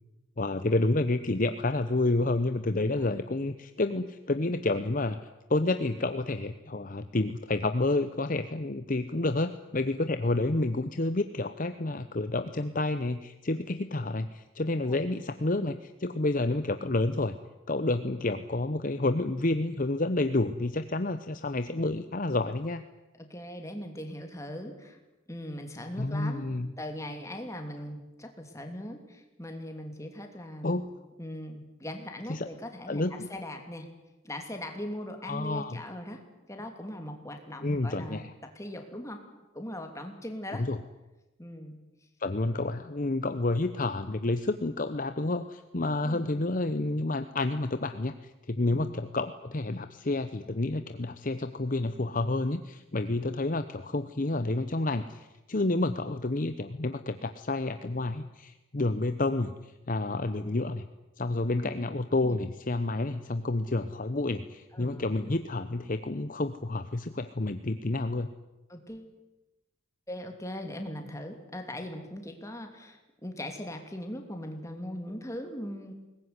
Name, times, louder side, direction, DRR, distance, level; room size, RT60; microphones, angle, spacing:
voice 1, 0.4-5.2 5.5-17.4 17.7-22.8 26.0-26.7 30.6-30.9 32.3-32.5 32.9-33.3 35.3-35.8 37.6-38.3 40.5-40.8 42.2-60.9 61.2-68.3, left 2 dB, 40° left, 10 dB, 0.8 m, -29 dB
voice 2, 2.8-3.1 14.8-15.0 23.2-25.0 25.3-26.5 26.8-30.9 31.2-33.9 34.2-39.3 39.5-40.7 41.4-41.8 46.0-46.3 48.7-48.9 62.2-62.4 64.7-65.1 68.7-69.1 70.1-75.9, left 1 dB, 15° left, 4 dB, 2.9 m, -40 dB
22.0 x 19.5 x 9.7 m, 1.0 s
head